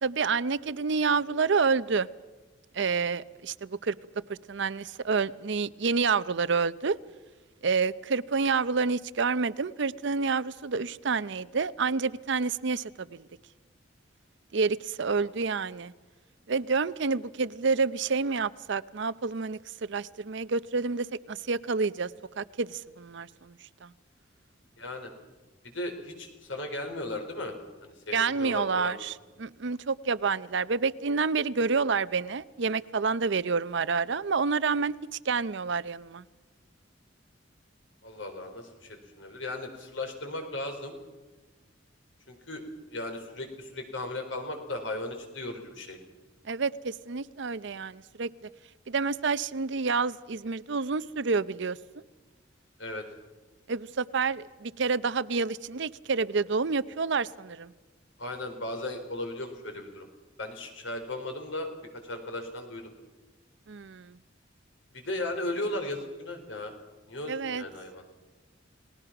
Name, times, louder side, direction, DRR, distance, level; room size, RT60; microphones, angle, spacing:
voice 1, 0.0-2.1 2.7-3.9 4.3-7.0 7.6-13.3 14.5-15.9 16.5-22.1 22.4-23.9 28.1-34.9 35.2-36.2 46.4-48.3 48.9-51.8 53.7-57.7 63.7-64.2 67.3-67.6, right 4 dB, 65° right, 16 dB, 0.7 m, -28 dB
voice 2, 24.8-25.1 25.6-27.6 27.8-28.9 38.0-40.9 42.3-42.6 42.9-46.0 52.8-53.0 58.2-60.1 60.4-62.9 64.9-66.7 67.1-68.0, left 1 dB, 85° left, 5 dB, 4.5 m, -36 dB
30.0 x 19.0 x 5.9 m, 1.2 s
head